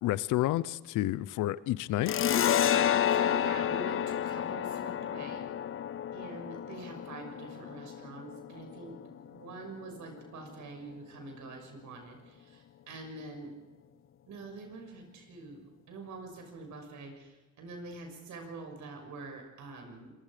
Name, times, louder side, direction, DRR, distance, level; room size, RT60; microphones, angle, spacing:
voice 1, 0.0-2.2, left 15 dB, 90° left, 18 dB, 0.7 m, -30 dB
sound 1, 2.1-9.2, left 10 dB, 45° left, 0.6 m, -30 dB
voice 2, 2.6-5.5 6.1-13.5 14.3-20.1, right 3 dB, 75° right, 4 dB, 6.5 m, -45 dB
26.0 x 22.5 x 5.1 m, 1.2 s
cardioid pair, 90°, 30 cm